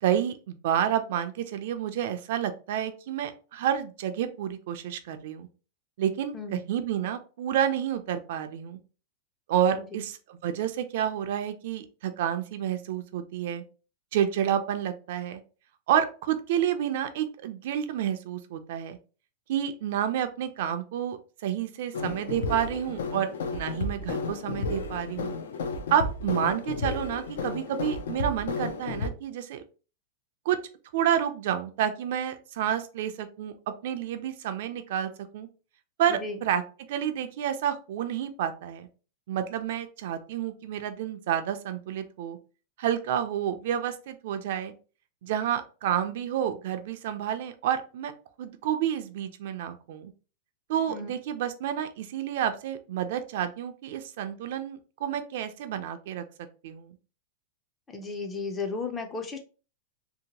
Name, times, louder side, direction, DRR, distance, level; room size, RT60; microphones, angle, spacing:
voice 1, 0.0-5.5 6.0-8.8 9.5-13.6 14.1-15.4 15.9-19.0 19.5-25.3 25.9-29.6 30.5-30.6 30.9-35.5 36.0-36.6 36.9-38.9 39.3-42.4 42.8-44.7 45.2-48.1 48.4-50.1 50.7-56.2 56.6-57.0, right 10 dB, 55° right, 9 dB, 0.4 m, -29 dB
sound 1, 21.9-29.1, left 3 dB, 85° left, 0.5 m, -33 dB
voice 2, 57.9-59.4, left 4 dB, 15° left, 5 dB, 0.4 m, -34 dB
2.7 x 2.1 x 2.8 m, 0.35 s
supercardioid pair, 165°, 0 cm